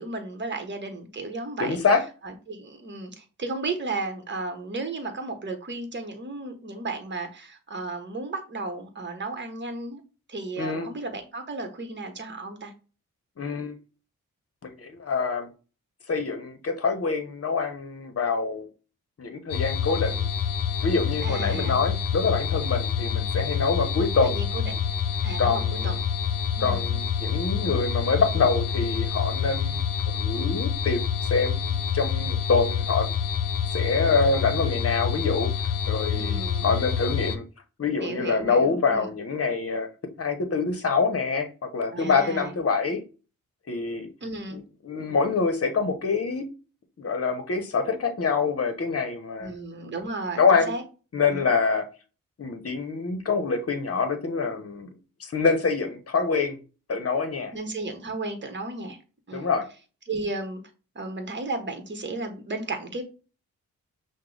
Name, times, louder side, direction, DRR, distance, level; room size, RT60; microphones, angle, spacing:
voice 1, 0.0-1.8 2.2-10.0 10.3-12.7 21.2-21.8 24.2-24.8 25.2-26.0 26.6-26.9 36.1-36.7 38.0-39.1 41.9-42.5 44.2-44.6 49.4-50.8 51.3-51.5 57.5-59.0 59.3-59.5 60.1-60.6 60.9-63.0, right 3 dB, 35° right, 1.0 m, -34 dB
voice 2, 1.6-2.0 10.6-10.9 13.4-13.7 14.6-15.5 16.1-18.7 19.2-20.2 20.8-24.4 25.4-26.0 26.6-33.1 33.7-37.4 37.8-39.9 40.2-43.0 43.7-44.1 44.5-46.5 47.0-49.5 50.4-50.7 51.1-51.9 52.4-54.9 55.2-56.6 56.9-57.5 59.3-59.7, left 4 dB, 45° left, 0.9 m, -26 dB
sound 1, 19.5-37.4, left 7 dB, 80° left, 0.5 m, -27 dB
5.8 x 2.2 x 3.3 m
cardioid pair, 65°, 33 cm